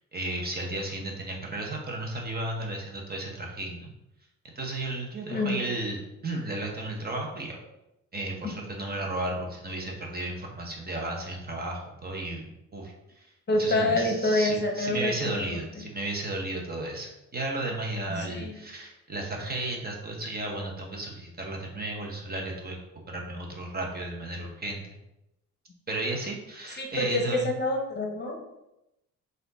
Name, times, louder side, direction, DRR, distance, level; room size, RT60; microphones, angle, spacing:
voice 1, 0.1-3.9 4.5-7.6 8.1-13.3 13.6-22.8 23.1-25.0 25.9-27.5, right 2 dB, 30° right, 0 dB, 1.0 m, -34 dB
voice 2, 13.5-15.6 18.1-18.6 26.8-28.4, left 2 dB, 35° left, 2 dB, 0.8 m, -27 dB
4.2 x 2.6 x 4.0 m, 0.89 s
cardioid pair, 90°, 30 cm